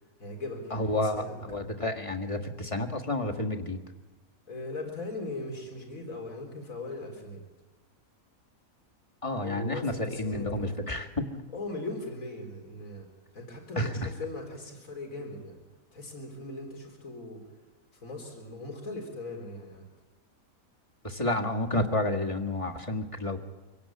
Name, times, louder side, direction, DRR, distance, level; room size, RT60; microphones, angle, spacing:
voice 1, 0.2-1.3 4.5-7.4 9.4-10.8 11.5-13.1 13.3-15.6 15.9-17.4 18.0-19.8, left 2 dB, 65° left, 2 dB, 4.3 m, -39 dB
voice 2, 0.7-3.8 9.2-11.4 13.8-13.9 21.0-23.4, left 1 dB, 20° left, 2 dB, 1.8 m, -30 dB
25.0 x 17.0 x 8.7 m, 1.2 s
omnidirectional pair, 1.5 m